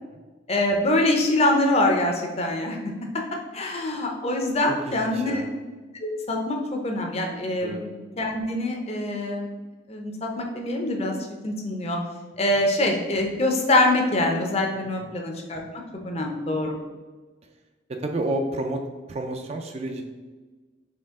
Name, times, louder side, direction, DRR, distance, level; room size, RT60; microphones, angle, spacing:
voice 1, 0.5-2.8 3.5-5.4 6.0-7.9 8.2-9.5 9.9-11.1 11.4-12.0 12.4-15.6 16.0-16.8, left 1 dB, 30° left, 2 dB, 0.6 m, -24 dB
voice 2, 4.7-5.5 7.6-7.8 14.9-15.1 16.2-16.3 18.0-18.8 19.1-20.0, right 1 dB, 30° right, 4 dB, 0.3 m, -30 dB
4.4 x 3.2 x 3.6 m, 1.3 s
head